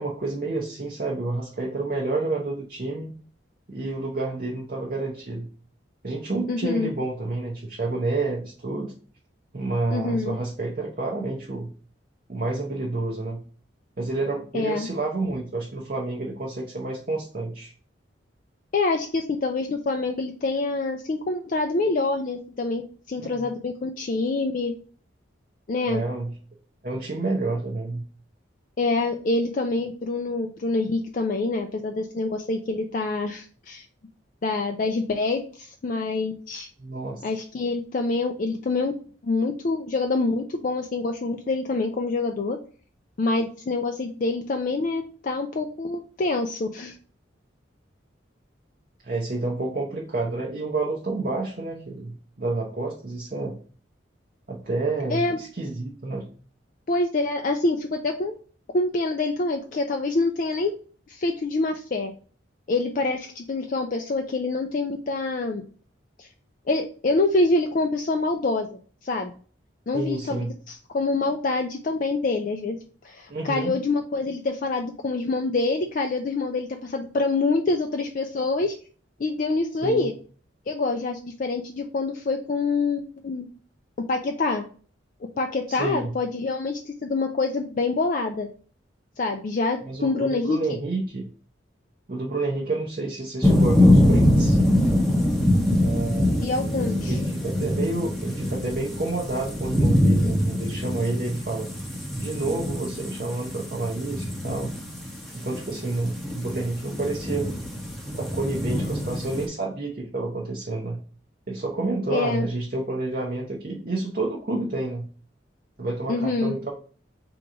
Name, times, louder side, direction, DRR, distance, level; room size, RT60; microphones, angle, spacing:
voice 1, 0.0-3.1 3.7-5.5 6.0-8.9 9.5-11.7 12.3-13.4 14.0-17.7 23.2-23.6 25.9-26.3 26.8-28.0 36.8-37.2 49.0-53.6 54.5-56.3 69.9-70.5 73.3-73.8 79.8-80.1 85.7-86.1 89.8-91.2 92.1-94.6 95.8-96.5 97.1-101.7 102.2-104.7 105.3-107.5 108.2-111.0 111.5-115.1 115.8-116.7, right 2 dB, 45° right, -1 dB, 0.7 m, -29 dB
voice 2, 6.5-6.9 9.9-10.3 14.5-14.9 18.7-24.7 25.7-26.0 28.8-33.9 34.4-36.7 37.2-42.6 43.2-46.9 55.1-55.4 56.9-58.4 58.7-60.7 61.1-62.1 62.7-65.6 66.2-66.3 66.7-69.3 69.9-72.8 73.0-78.7 79.2-80.1 80.7-83.5 84.1-84.6 85.4-88.5 89.2-90.8 96.4-97.2 112.1-112.5 116.1-116.5, left 3 dB, 45° left, 4 dB, 0.4 m, -26 dB
sound 1, 93.4-109.5, left 1 dB, ahead, 0.9 m, -23 dB
3.7 x 2.9 x 4.8 m, 0.42 s
head